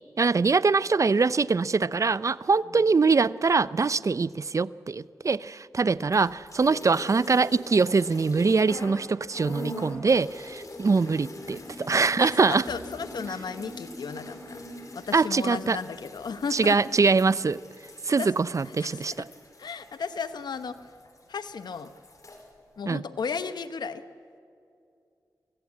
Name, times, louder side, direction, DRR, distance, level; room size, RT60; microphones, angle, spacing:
voice 1, 0.2-12.6 15.1-15.8 16.5-17.6 18.1-19.1 22.9-23.0, right 4 dB, 50° right, 0.5 m, -23 dB
sound 1, 6.1-9.0 9.3-21.2 21.5-22.4, left 1 dB, 55° left, 3.9 m, -43 dB
voice 2, 12.2-14.6 14.9-16.8 18.2-18.3 18.6-19.2 19.6-20.8 21.3-21.9 22.8-24.0, left 5 dB, 85° left, 0.9 m, -34 dB
24.0 x 16.0 x 8.5 m
cardioid pair, 45°, 7 cm